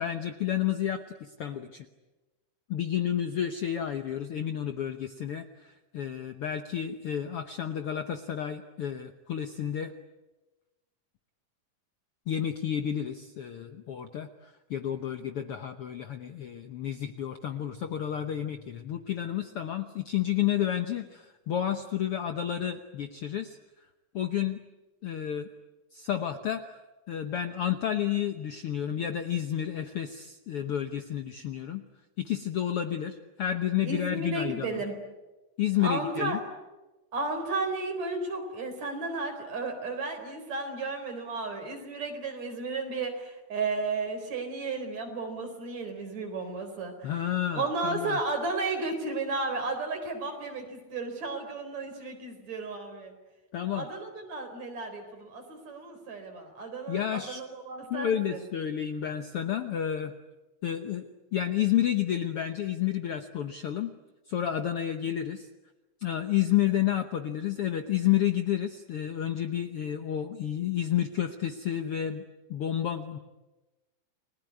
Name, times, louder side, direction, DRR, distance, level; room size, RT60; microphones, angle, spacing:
voice 1, 0.0-1.9 2.7-9.9 12.3-23.6 24.1-24.6 25.0-25.5 25.9-26.7 27.1-31.8 32.2-34.8 35.6-36.4 47.0-48.2 53.5-53.9 56.9-57.4 57.9-60.1 60.6-63.9 64.3-65.5 66.0-72.2 72.5-73.2, left 10 dB, 90° left, 8 dB, 1.2 m, -30 dB
voice 2, 33.9-35.0 35.8-36.4 37.1-47.1 47.5-53.1 53.7-58.4, right 3 dB, 50° right, 5 dB, 5.2 m, -33 dB
30.0 x 20.5 x 9.6 m, 1.1 s
omnidirectional pair, 4.1 m